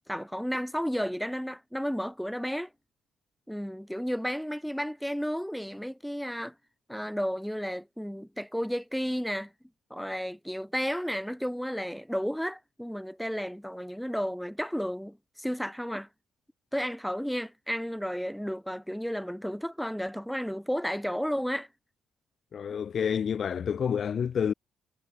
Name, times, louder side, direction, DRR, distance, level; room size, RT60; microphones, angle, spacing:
voice 1, 0.1-2.7 3.5-6.5 6.9-9.5 9.9-16.1 16.7-21.7, equal, ahead, 2.6 m, -32 dB
voice 2, 22.5-24.5, left 7 dB, 55° left, 0.5 m, -28 dB
cardioid pair, 90°, 0 cm